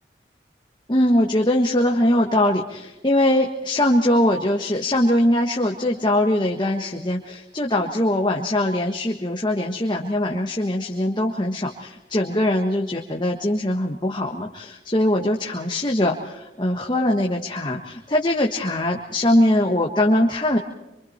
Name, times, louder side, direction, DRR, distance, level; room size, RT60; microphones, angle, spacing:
voice 1, 0.9-20.6, left 1 dB, 25° left, 1 dB, 1.5 m, -21 dB
26.5 x 24.5 x 4.4 m, 0.95 s
head